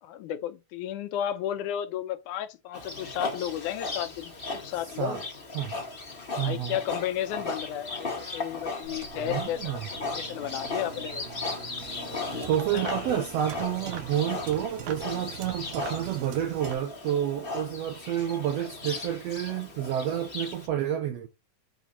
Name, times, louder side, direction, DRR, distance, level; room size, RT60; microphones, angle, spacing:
voice 1, 0.0-5.2 6.4-11.2 12.7-13.2, left 11 dB, 75° left, 2.0 m, -33 dB
Livestock farm animals working animals, 2.7-20.7, left 3 dB, 35° left, 0.9 m, -37 dB
voice 2, 6.4-6.7 9.2-9.9 12.5-21.3, right 10 dB, 90° right, 1.4 m, -29 dB
sound 1, 8.8-16.8, right 9 dB, 75° right, 2.3 m, -43 dB
7.4 x 4.0 x 4.1 m
omnidirectional pair, 3.7 m